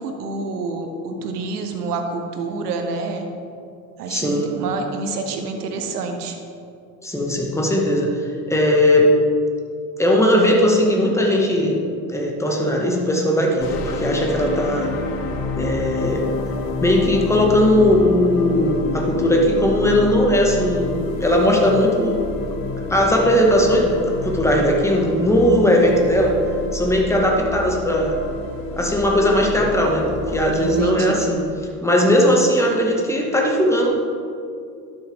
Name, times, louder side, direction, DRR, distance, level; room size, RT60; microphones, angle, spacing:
voice 1, 0.0-3.3 4.0-6.4 30.5-31.3, right 3 dB, 80° right, 5 dB, 1.2 m, -28 dB
voice 2, 4.1-4.5 7.0-9.2 10.0-11.8 12.1-14.9 15.6-16.3 16.8-22.2 22.9-26.4 26.7-28.2 28.8-31.4 31.8-34.0, equal, 5° left, -1 dB, 1.8 m, -18 dB
sound 1, 13.6-30.8, left 3 dB, 50° left, 1.1 m, -28 dB
11.5 x 6.7 x 3.6 m, 2.5 s
hypercardioid pair, 70°, 46 cm